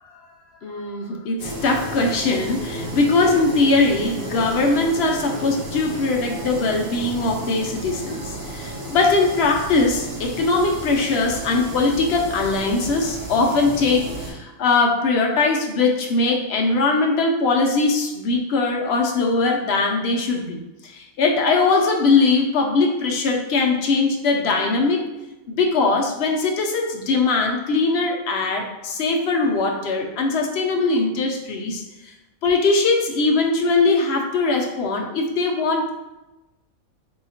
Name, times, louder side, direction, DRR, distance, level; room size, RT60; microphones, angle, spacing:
voice 1, 0.6-25.0 25.5-31.8 32.4-35.9, left 3 dB, 60° left, 1 dB, 0.7 m, -21 dB
sound 1, 1.4-14.3, right 1 dB, 80° right, 1.3 m, -33 dB
3.7 x 2.8 x 2.8 m, 1.0 s
omnidirectional pair, 1.5 m